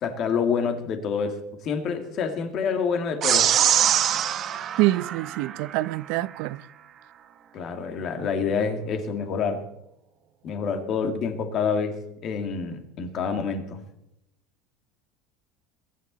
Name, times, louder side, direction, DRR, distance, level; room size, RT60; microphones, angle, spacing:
voice 1, 0.0-3.5 7.5-9.6 10.4-13.8, left 6 dB, 35° left, 2.2 m, -27 dB
sound 1, 3.2-5.9, right 10 dB, 30° right, 0.9 m, -23 dB
voice 2, 4.8-6.6, right 18 dB, 55° right, 0.5 m, -25 dB
22.0 x 10.5 x 4.0 m
cardioid pair, 170°, 0 cm